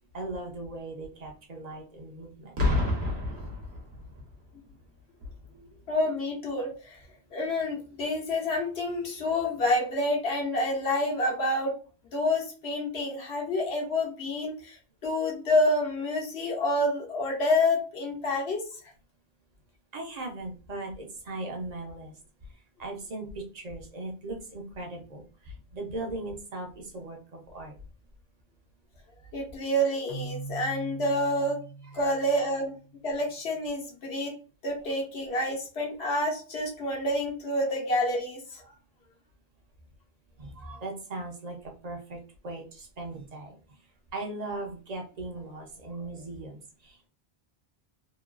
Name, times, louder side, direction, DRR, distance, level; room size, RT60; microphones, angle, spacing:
voice 1, 0.1-2.6 5.5-5.8 19.9-22.2 22.5-27.8 31.8-32.0 32.4-32.5 40.4-43.6 44.1-47.1, right 2 dB, 45° right, 2 dB, 0.7 m, -39 dB
Boom, 2.6-4.3 5.2-5.5, left 2 dB, 75° right, 1.1 m, -28 dB
voice 2, 5.9-7.0 7.3-11.7 12.1-14.8 15.0-18.6 29.3-31.6 31.9-32.7 33.0-34.3 34.6-38.6, left 1 dB, 75° left, -1 dB, 1.1 m, -28 dB
Keyboard (musical), 30.1-33.0, right 2 dB, 50° left, 0.5 m, -41 dB
2.9 x 2.3 x 2.3 m, 0.37 s
omnidirectional pair, 1.1 m